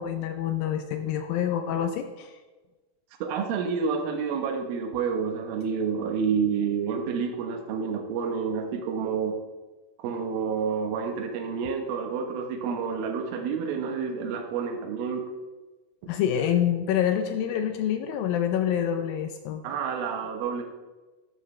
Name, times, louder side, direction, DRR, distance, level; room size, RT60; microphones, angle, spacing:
voice 1, 0.0-2.3 16.1-19.6, left 9 dB, 80° left, 7 dB, 2.3 m, -27 dB
voice 2, 3.2-9.3 10.0-15.2 19.6-20.6, right 6 dB, 75° right, 3 dB, 2.8 m, -29 dB
13.0 x 12.0 x 3.2 m, 1.2 s
omnidirectional pair, 4.5 m